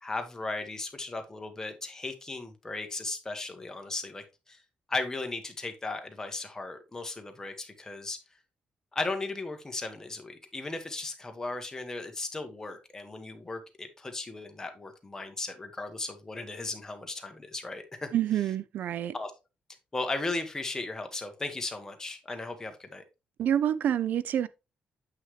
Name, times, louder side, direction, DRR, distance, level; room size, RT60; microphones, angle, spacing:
voice 1, 0.0-4.6 4.9-8.2 8.9-18.1 19.1-19.3 19.9-23.0, left 3 dB, 20° left, 1.5 m, -36 dB
voice 2, 18.1-19.1 23.4-24.5, right 10 dB, 70° right, 0.4 m, -27 dB
8.3 x 5.6 x 3.2 m
cardioid pair, 115°, 3 cm